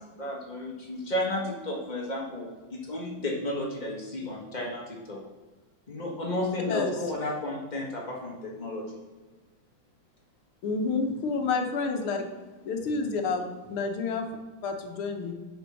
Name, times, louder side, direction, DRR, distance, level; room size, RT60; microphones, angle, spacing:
voice 1, 0.2-5.2 5.9-8.8, left 1 dB, 90° left, -3 dB, 0.4 m, -33 dB
voice 2, 10.6-12.3 12.6-14.3 14.6-15.3, left 4 dB, 65° left, 4 dB, 1.3 m, -29 dB
9.9 x 5.2 x 6.2 m, 1.3 s
omnidirectional pair, 3.5 m